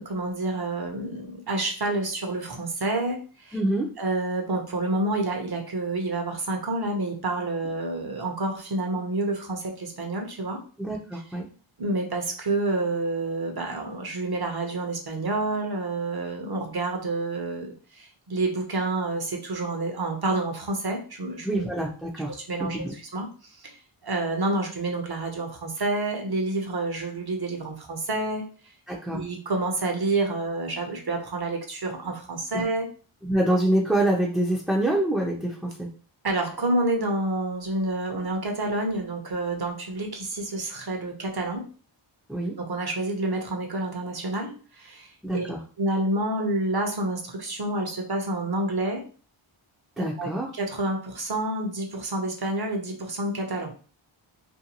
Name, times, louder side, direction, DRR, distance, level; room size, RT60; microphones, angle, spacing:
voice 1, 0.0-3.6 4.0-10.6 11.8-21.6 22.3-23.7 24.0-28.5 29.1-32.9 36.2-41.7 42.6-45.5 45.8-49.0 50.0-53.7, right 2 dB, 50° right, 3 dB, 0.7 m, -28 dB
voice 2, 3.5-3.9 10.8-11.5 21.4-22.9 28.9-29.2 32.5-32.6 33.2-35.9 42.3-42.5 45.2-45.6 50.0-50.5, right 1 dB, ahead, -3 dB, 0.4 m, -26 dB
2.6 x 2.2 x 2.8 m, 0.40 s
wide cardioid pair, 60°, 50 cm